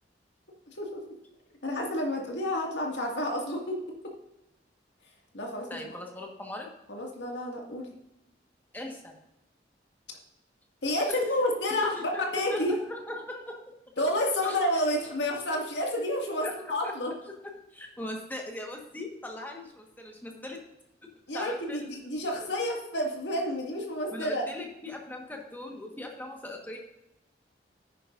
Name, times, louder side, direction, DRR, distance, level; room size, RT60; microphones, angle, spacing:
voice 1, 1.6-3.8 5.3-6.0 6.9-7.9 10.8-11.9 12.3-12.7 14.0-17.1 21.3-24.5, left 1 dB, 75° left, 0 dB, 2.1 m, -30 dB
voice 2, 5.7-6.7 8.7-9.1 11.1-11.2 11.8-13.6 14.4-14.6 16.4-16.9 17.3-20.6 21.0-21.9 24.1-26.8, left 1 dB, 10° left, 1 dB, 1.4 m, -39 dB
10.0 x 9.9 x 2.6 m, 0.88 s
head